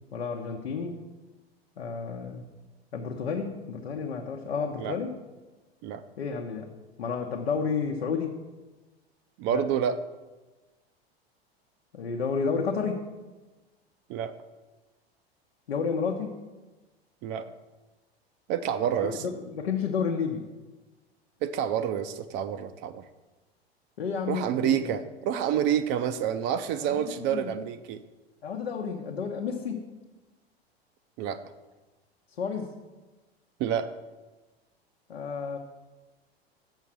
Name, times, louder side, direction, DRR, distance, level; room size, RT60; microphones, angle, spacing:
voice 1, 0.1-1.0 1.8-2.5 2.9-5.2 6.2-6.7 7.0-8.4 9.5-9.6 11.9-13.1 15.7-16.3 18.8-20.4 24.0-24.8 26.8-27.5 28.4-29.9 32.4-32.7 35.1-35.6, left 5 dB, 75° left, 0 dB, 0.9 m, -31 dB
voice 2, 9.4-10.0 14.1-14.3 17.2-17.5 18.5-19.2 21.4-23.1 24.3-28.0 31.2-31.4 33.6-33.9, right 9 dB, 35° right, 10 dB, 0.5 m, -28 dB
7.5 x 5.6 x 7.4 m, 1.2 s
figure-of-eight pair, 85°, 31 cm